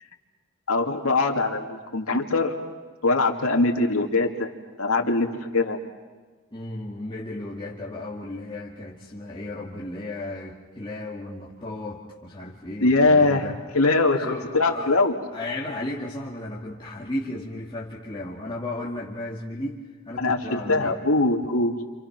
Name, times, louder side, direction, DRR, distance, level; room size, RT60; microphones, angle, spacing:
voice 1, 0.7-2.6 3.0-4.5 4.8-5.8 12.8-15.1 20.2-21.8, left 3 dB, 80° left, 3 dB, 2.3 m, -22 dB
voice 2, 6.5-13.6 14.2-14.9 15.3-21.0, left 1 dB, 20° left, -4 dB, 2.1 m, -34 dB
29.5 x 27.5 x 6.0 m, 1.3 s
head